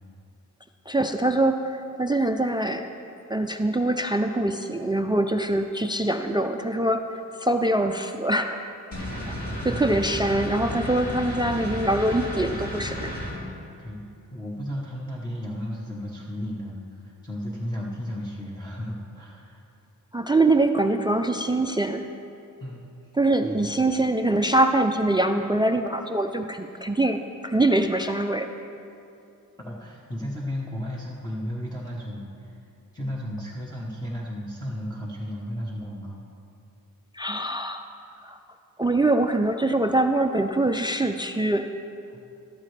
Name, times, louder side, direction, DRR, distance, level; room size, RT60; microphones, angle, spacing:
voice 1, 0.9-2.9 3.3-8.6 9.3-9.4 9.6-13.1 20.1-22.0 23.2-28.5 37.1-37.8 38.2-38.4 38.8-41.7, right 2 dB, 15° right, 6 dB, 0.3 m, -24 dB
sound 1, 8.9-13.3, equal, 80° left, 3.1 m, -33 dB
voice 2, 8.9-10.1 13.8-14.0 14.3-19.6 22.6-22.9 23.4-23.7 29.6-32.5 32.9-36.2 42.1-42.3, equal, 10° left, -5 dB, 1.0 m, -34 dB
13.0 x 12.5 x 3.3 m, 2.6 s
wide cardioid pair, 155°, 34 cm